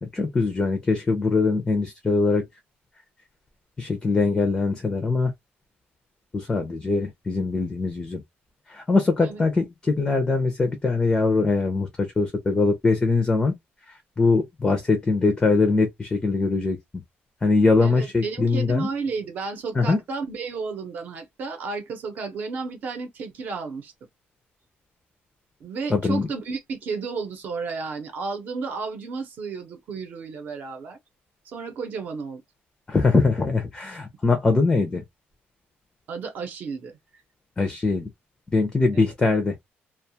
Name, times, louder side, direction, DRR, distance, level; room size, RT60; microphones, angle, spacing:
voice 1, 0.0-2.5 3.8-5.3 6.3-8.2 8.7-13.5 14.2-16.8 17.4-18.9 19.8-20.0 25.9-26.3 32.9-35.0 37.6-38.1 38.5-39.5, left 3 dB, 15° left, 0.5 m, -22 dB
voice 2, 17.8-23.9 25.6-31.0 31.4-32.4 36.1-37.0, right 4 dB, 45° right, 0.8 m, -32 dB
2.3 x 2.3 x 2.7 m
cardioid pair, 180°, 4 cm